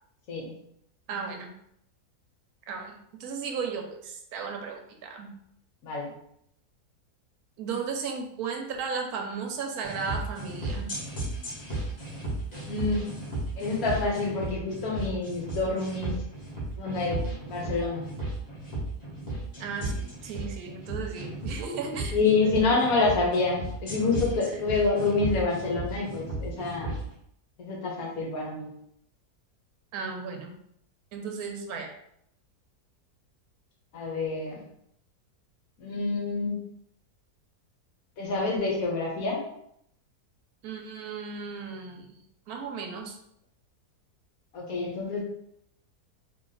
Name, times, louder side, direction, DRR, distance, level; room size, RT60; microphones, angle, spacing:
voice 1, 0.3-0.6 5.8-6.1 12.6-13.1 13.6-16.2 16.8-18.1 22.1-26.9 27.6-28.7 33.9-34.6 35.8-36.6 38.2-39.4 44.5-45.2, left 3 dB, 65° left, 0 dB, 1.2 m, -27 dB
voice 2, 1.1-1.5 2.7-2.9 3.2-5.3 7.6-10.9 19.6-22.2 22.4-22.5 22.9-23.1 29.9-30.5 31.1-31.9 40.6-42.1 42.5-43.2, right 5 dB, 75° right, 3 dB, 1.1 m, -35 dB
sound 1, 9.8-27.0, right 1 dB, 30° left, 1.2 m, -35 dB
3.0 x 2.7 x 3.8 m, 0.73 s
omnidirectional pair, 1.7 m